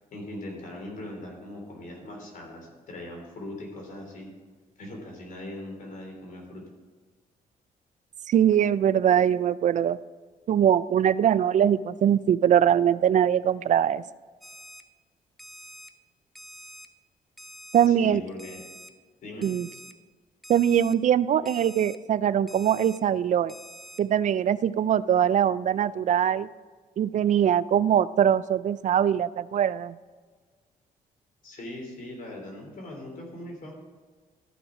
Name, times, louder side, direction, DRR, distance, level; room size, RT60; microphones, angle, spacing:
voice 1, 0.0-4.3 4.8-6.6 17.9-18.6 19.2-19.5 31.4-33.7, left 1 dB, 60° left, 0 dB, 3.4 m, -40 dB
voice 2, 8.3-10.0 10.5-14.0 17.7-18.2 19.4-19.7 20.5-23.5 24.0-26.5 27.0-30.0, right 9 dB, 55° right, 17 dB, 0.4 m, -22 dB
Alarm, 14.4-14.8 15.4-15.9 16.3-16.9 17.4-17.9 18.4-18.9 19.4-19.9 20.4-20.9 21.4-22.0 22.5-23.0 23.5-24.0, right 1 dB, ahead, 0.7 m, -46 dB
13.5 x 5.9 x 5.0 m, 1.4 s
cardioid pair, 85°, 15 cm